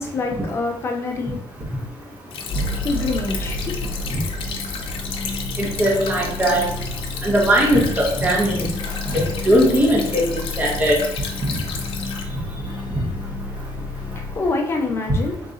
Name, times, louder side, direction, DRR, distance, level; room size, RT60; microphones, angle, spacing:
voice 1, 0.0-2.0 2.2-4.0 13.5-15.3, left 3 dB, 30° left, 2 dB, 0.6 m, -27 dB
Stream / Trickle dribble, 2.3-12.2, left 6 dB, 75° left, 0.6 m, -33 dB
sound 1, 2.5-14.4, left 2 dB, 55° left, 0.9 m, -31 dB
voice 2, 5.6-6.6 7.2-8.7 9.1-10.3 10.6-11.0, equal, 15° right, -3 dB, 0.9 m, -19 dB
3.8 x 2.7 x 3.7 m, 0.73 s
cardioid pair, 170°, 9 cm